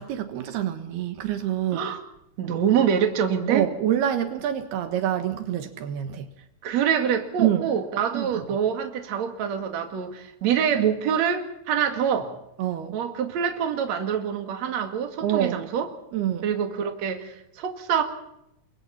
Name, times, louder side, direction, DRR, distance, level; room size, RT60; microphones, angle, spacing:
voice 1, 0.0-1.9 3.5-6.3 7.4-7.7 8.1-8.6 12.6-13.0 15.2-15.7 16.1-16.4, right 11 dB, 80° right, 3.4 m, -26 dB
voice 2, 2.4-3.7 6.6-12.3 12.9-15.9 16.4-18.0, right 8 dB, 50° right, 3.0 m, -25 dB
30.0 x 23.0 x 4.3 m
omnidirectional pair, 4.6 m